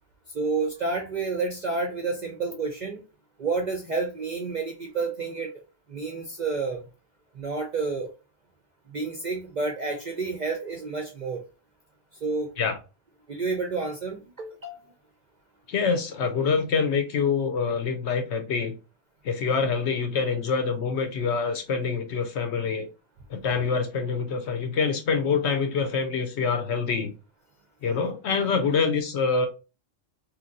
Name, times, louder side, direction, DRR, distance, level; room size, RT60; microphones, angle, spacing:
voice 1, 0.3-3.0 3.4-5.5 5.9-6.8 7.4-8.1 8.9-11.4 12.2-12.5 13.3-14.8, right 4 dB, 55° right, 2 dB, 0.5 m, -29 dB
voice 2, 15.7-18.7 19.2-22.9 23.3-27.1 27.8-29.5, left 5 dB, 65° left, 7 dB, 0.8 m, -25 dB
3.0 x 2.6 x 2.5 m, 0.30 s
omnidirectional pair, 1.3 m